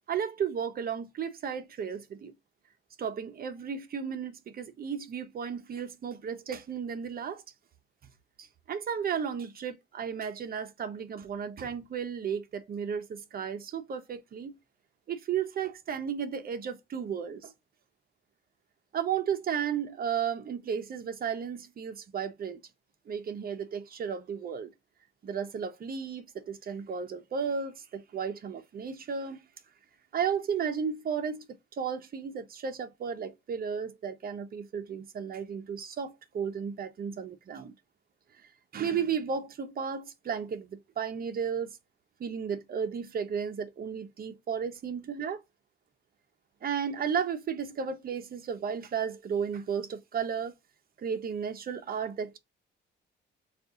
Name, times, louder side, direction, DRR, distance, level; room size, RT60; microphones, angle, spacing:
voice 1, 0.1-2.3 3.0-7.4 8.4-14.6 15.1-17.5 18.9-22.6 23.1-24.7 25.2-29.4 30.1-37.7 38.7-41.7 42.2-45.4 46.6-50.5 51.0-52.4, right 7 dB, 50° right, 0.8 m, -34 dB
4.1 x 2.5 x 3.6 m
cardioid pair, 90°, 20 cm